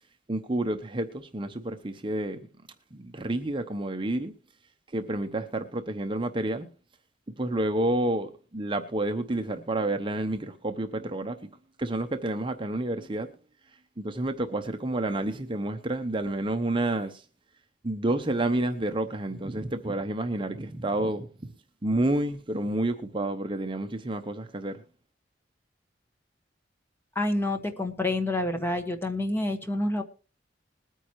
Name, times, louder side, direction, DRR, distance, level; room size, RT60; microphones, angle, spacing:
voice 1, 0.3-2.4 2.9-4.3 4.9-6.7 7.4-11.5 11.8-13.3 14.0-17.2 17.8-21.3 21.8-24.8, right 1 dB, 30° right, 0.8 m, -29 dB
voice 2, 27.1-30.0, left 1 dB, 15° left, 1.4 m, -28 dB
21.0 x 9.2 x 3.0 m
head